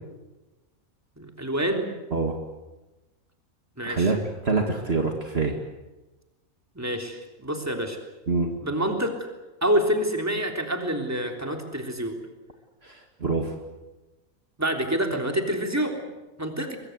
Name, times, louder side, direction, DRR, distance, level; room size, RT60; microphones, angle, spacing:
voice 1, 1.2-1.9 3.8-4.1 6.7-8.0 8.6-9.1 9.6-12.1 14.6-16.0 16.4-16.8, right 1 dB, 10° right, 3 dB, 3.4 m, -27 dB
voice 2, 3.9-4.2 4.4-5.5 8.3-8.5 12.8-13.5, right 4 dB, 45° right, 3 dB, 2.3 m, -25 dB
23.0 x 23.0 x 8.1 m, 1.1 s
omnidirectional pair, 1.5 m